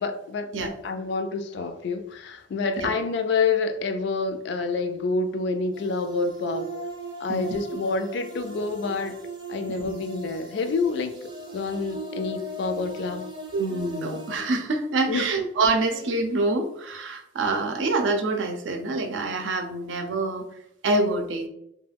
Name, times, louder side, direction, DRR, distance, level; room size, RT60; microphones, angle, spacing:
voice 1, 0.0-6.7 7.2-9.2 9.5-11.1 11.5-13.3 15.1-15.3, left 4 dB, 65° left, 8 dB, 0.3 m, -28 dB
sound 1, 5.7-14.4, right 1 dB, 25° right, 0.6 m, -38 dB
voice 2, 13.5-20.5 20.8-21.5, right 3 dB, 85° right, 4 dB, 0.5 m, -26 dB
2.3 x 2.2 x 3.3 m, 0.77 s
head